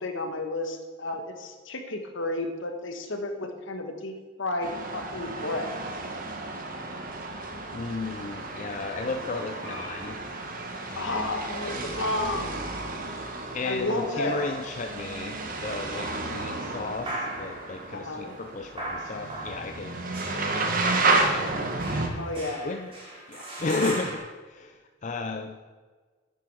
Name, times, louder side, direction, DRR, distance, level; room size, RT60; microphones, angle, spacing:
voice 1, 0.0-5.7 10.9-12.6 13.6-14.4 17.9-18.3 22.1-22.7, left 2 dB, 65° left, 5 dB, 1.3 m, -32 dB
sound 1, 4.6-22.1, right 3 dB, 40° right, 1.1 m, -32 dB
voice 2, 7.7-10.2 10.9-11.3 13.5-21.7 22.6-22.9 23.3-25.6, left 3 dB, 35° left, 5 dB, 0.4 m, -34 dB
sound 2, 8.4-11.9 12.5-15.1 15.7-16.6 17.0-24.2, right 1 dB, 25° right, 2.9 m, -40 dB
9.6 x 9.4 x 4.7 m, 1.4 s
head